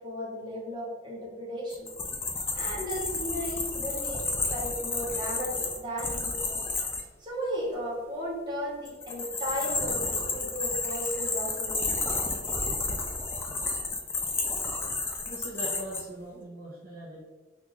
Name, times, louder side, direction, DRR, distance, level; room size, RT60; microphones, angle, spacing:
voice 1, 0.0-1.9 2.5-6.6 7.2-12.0, equal, 25° right, -5 dB, 1.0 m, -35 dB
sound 1, 1.7-7.0 8.9-16.0, left 3 dB, 15° left, 0.3 m, -31 dB
voice 2, 15.2-17.2, equal, 55° right, -5 dB, 0.6 m, -40 dB
3.6 x 2.4 x 3.0 m, 1.2 s
head